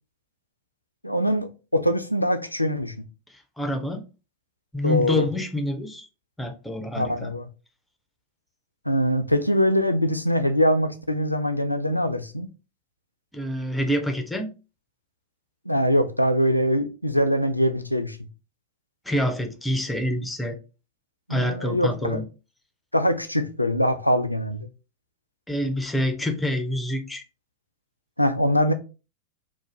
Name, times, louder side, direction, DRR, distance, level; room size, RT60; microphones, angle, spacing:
voice 1, 1.0-2.9 4.8-5.3 6.9-7.5 8.9-12.5 15.7-18.2 21.3-22.2 22.9-24.7 28.2-28.7, equal, 85° left, 0.3 m, -23 dB
voice 2, 3.6-4.0 4.7-6.1 6.4-7.3 13.3-14.5 19.1-20.6 21.3-22.2 25.5-27.2, left 1 dB, 5° left, 0.4 m, -27 dB
2.5 x 2.1 x 3.0 m
figure-of-eight pair, 90°, 0 cm